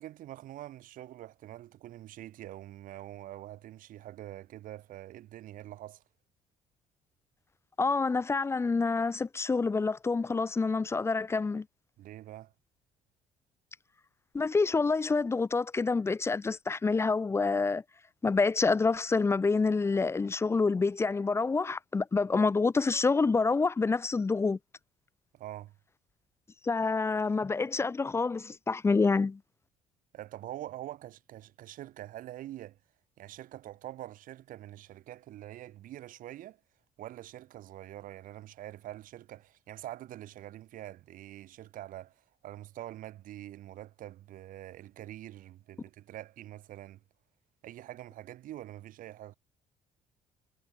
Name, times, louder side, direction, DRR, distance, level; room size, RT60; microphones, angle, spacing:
voice 1, 0.0-6.0 12.0-12.5 25.3-25.8 30.1-32.8 33.2-36.6 37.0-47.0 47.6-49.3, right 14 dB, 65° right, 1.7 m, -45 dB
voice 2, 7.8-11.6 14.3-17.8 18.2-24.6 26.6-29.4, left 4 dB, 20° left, 0.4 m, -27 dB
supercardioid pair, 75°, 15 cm